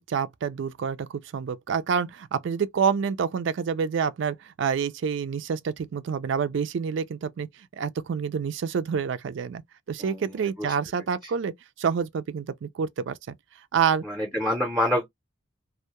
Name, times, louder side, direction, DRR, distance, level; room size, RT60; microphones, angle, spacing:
voice 1, 0.0-7.5 7.7-9.6 9.9-13.4 13.7-14.0, right 6 dB, 65° right, 0.3 m, -28 dB
voice 2, 10.0-10.7 14.0-15.1, left 1 dB, ahead, 0.6 m, -27 dB
2.2 x 2.1 x 2.8 m
head